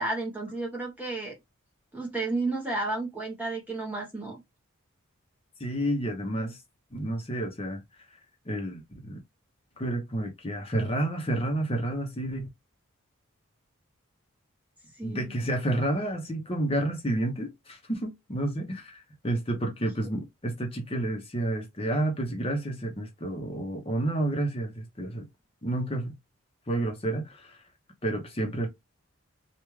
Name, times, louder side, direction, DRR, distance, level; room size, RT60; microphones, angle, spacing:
voice 1, 0.0-1.4 1.9-4.4 14.9-15.4, right 2 dB, 10° right, 0.9 m, -32 dB
voice 2, 5.6-6.6 6.9-7.8 8.5-9.2 9.8-12.5 15.0-25.3 25.6-26.1 26.7-27.6 28.0-28.7, right 1 dB, 25° left, 0.8 m, -30 dB
3.4 x 2.4 x 3.1 m
head